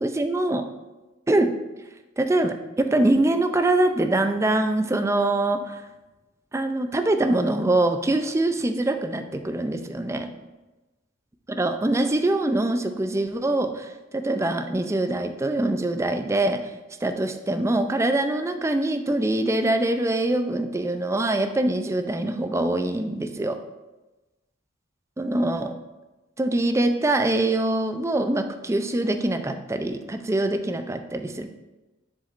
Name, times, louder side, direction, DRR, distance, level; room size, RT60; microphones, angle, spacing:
voice 1, 0.0-0.6 1.3-1.5 2.2-5.8 6.5-10.3 11.5-16.6 17.0-23.6 25.2-25.7 26.4-31.5, right 2 dB, 15° right, 7 dB, 0.4 m, -24 dB
7.2 x 7.1 x 2.5 m, 1.1 s
head